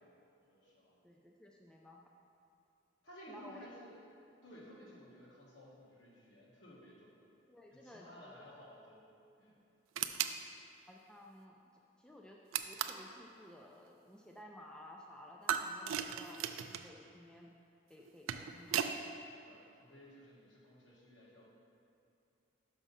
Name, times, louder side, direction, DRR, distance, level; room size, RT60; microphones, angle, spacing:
voice 1, 0.0-1.0 3.0-4.0 4.4-7.2 7.7-9.1 9.4-9.6 19.4-21.5, equal, 65° left, -5 dB, 1.6 m, -56 dB
voice 2, 1.0-2.1 3.3-3.7 7.5-8.3 10.9-17.5 17.9-18.8, left 1 dB, 5° left, -1 dB, 0.3 m, -55 dB
sound 1, 9.9-10.4 12.5-13.1 15.5-16.9 18.0-19.0, right 9 dB, 90° right, 0.4 m, -36 dB
6.0 x 5.3 x 5.5 m, 2.6 s
head